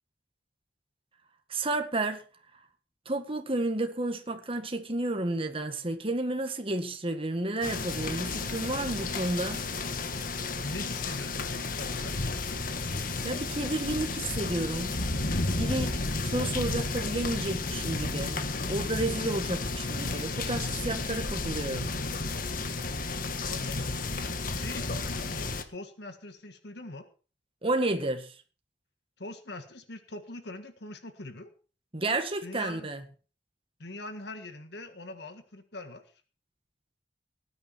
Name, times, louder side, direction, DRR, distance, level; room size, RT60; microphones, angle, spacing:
voice 1, 1.5-2.2 3.0-9.6 13.2-15.0 15.5-18.4 18.7-21.9 27.6-28.3 31.9-33.0, right 2 dB, 30° right, 1.7 m, -31 dB
sound 1, 7.6-25.6, left 3 dB, 50° left, 1.5 m, -32 dB
voice 2, 10.6-12.2 23.5-23.9 24.5-27.1 29.2-31.5 32.4-32.9 33.8-36.1, left 2 dB, 65° left, 1.7 m, -42 dB
18.5 x 9.8 x 4.5 m
head